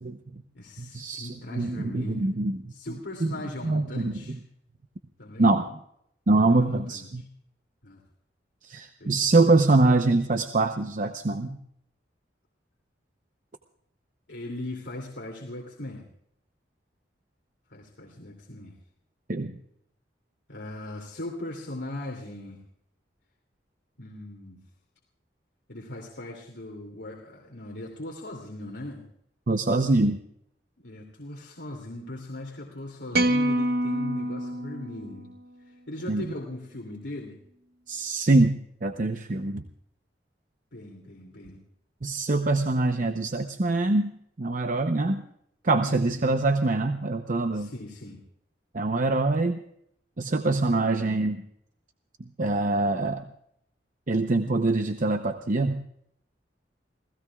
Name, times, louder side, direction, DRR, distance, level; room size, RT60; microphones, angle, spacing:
voice 1, 0.0-0.4 0.8-2.6 3.2-3.3 3.6-4.4 5.4-5.7 6.3-7.2 8.6-11.6 19.3-19.5 29.5-30.2 36.1-36.2 37.9-39.6 42.0-44.1 44.4-45.2 45.6-47.7 48.7-49.6 50.2-51.4 52.4-53.3 54.1-55.8, right 2 dB, 45° right, 7 dB, 0.8 m, -24 dB
voice 2, 0.5-2.3 2.7-4.4 5.2-5.5 6.5-7.1 7.8-8.0 9.0-9.2 14.3-16.1 17.7-18.8 20.5-22.6 24.0-24.6 25.7-29.0 30.8-35.3 35.6-37.4 40.7-41.6 45.8-46.3 47.5-48.2 50.5-51.1, left 1 dB, 80° left, 0 dB, 2.7 m, -39 dB
sound 1, 33.1-35.5, right 1 dB, 65° right, 1.1 m, -26 dB
29.5 x 17.0 x 2.4 m, 0.72 s
head